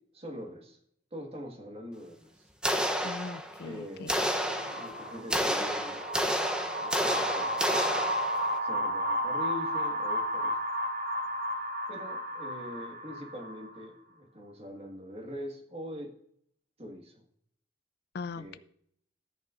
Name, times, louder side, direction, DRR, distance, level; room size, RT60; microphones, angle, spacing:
voice 1, 0.1-0.8 1.1-2.5 3.6-6.0 6.7-8.1 8.6-10.6 11.9-16.1 16.8-17.2 18.3-18.6, equal, 35° right, 2 dB, 1.7 m, -43 dB
sound 1, 2.6-3.7 4.1-8.6, equal, 5° right, 0.7 m, -30 dB
voice 2, 3.0-4.1 18.1-18.6, left 4 dB, 60° left, 15 dB, 0.4 m, -40 dB
sound 2, 4.4-13.8, equal, 50° right, 1.2 m, -33 dB
13.5 x 8.9 x 2.5 m, 0.67 s
head